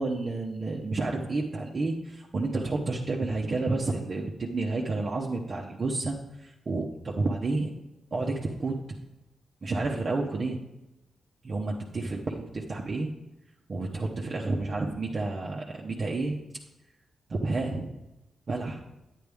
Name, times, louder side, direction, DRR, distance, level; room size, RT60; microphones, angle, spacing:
voice 1, 0.0-7.7 8.1-8.8 9.6-10.6 11.4-13.1 13.7-16.4 17.3-17.9 18.5-18.8, right 3 dB, 45° right, -2 dB, 0.9 m, -30 dB
9.5 x 9.4 x 3.5 m, 0.98 s
cardioid pair, 100°, 0 cm